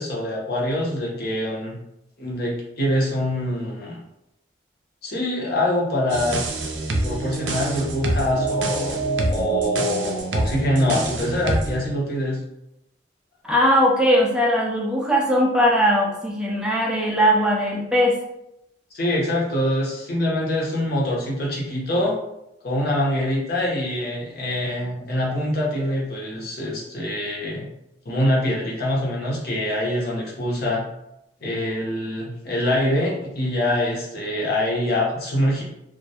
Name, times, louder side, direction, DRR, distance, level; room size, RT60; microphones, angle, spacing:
voice 1, 0.0-1.8 2.2-4.0 5.0-6.4 7.0-8.9 9.3-12.4 18.9-22.1 22.6-27.7 28.0-30.8 31.4-35.6, left 1 dB, 60° left, -3 dB, 0.7 m, -24 dB
sound 1, 6.1-11.8, right 2 dB, 90° right, 0.4 m, -25 dB
voice 2, 13.4-18.2, equal, 5° right, -2 dB, 0.3 m, -19 dB
2.2 x 2.1 x 2.7 m, 0.85 s
head